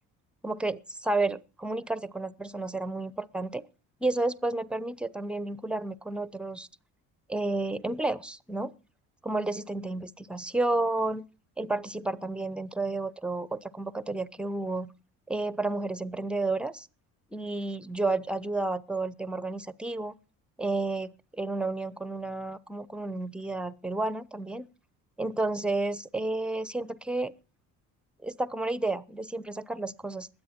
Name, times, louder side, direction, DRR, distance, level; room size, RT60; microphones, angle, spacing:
voice 1, 0.4-3.6 4.0-6.7 7.3-8.7 9.2-11.2 11.6-14.9 15.3-16.9 17.3-20.1 20.6-24.7 25.2-27.3 28.2-30.3, right 2 dB, 5° right, 0.8 m, -31 dB
21.0 x 7.9 x 4.4 m
hypercardioid pair, 60°, 41 cm